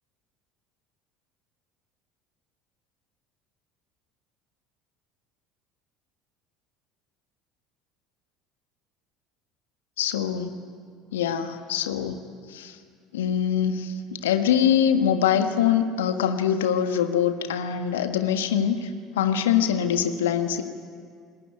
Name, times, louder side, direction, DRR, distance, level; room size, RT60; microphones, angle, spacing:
voice 1, 10.0-10.5 11.1-12.2 12.5-12.7 13.1-18.8 19.1-20.6, left 9 dB, 70° left, 8 dB, 1.5 m, -23 dB
29.5 x 20.0 x 9.2 m, 2.2 s
figure-of-eight pair, 65°, 0 cm